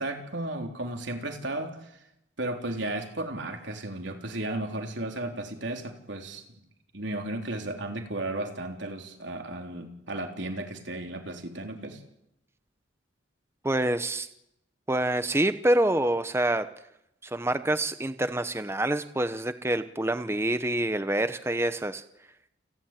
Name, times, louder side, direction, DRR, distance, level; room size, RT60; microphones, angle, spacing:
voice 1, 0.0-1.9 2.4-6.4 6.9-12.0, right 1 dB, 70° right, 3 dB, 3.7 m, -34 dB
voice 2, 13.6-14.3 14.9-16.7 17.2-22.0, right 1 dB, 15° right, 11 dB, 0.8 m, -26 dB
28.5 x 12.0 x 9.2 m, 0.81 s
head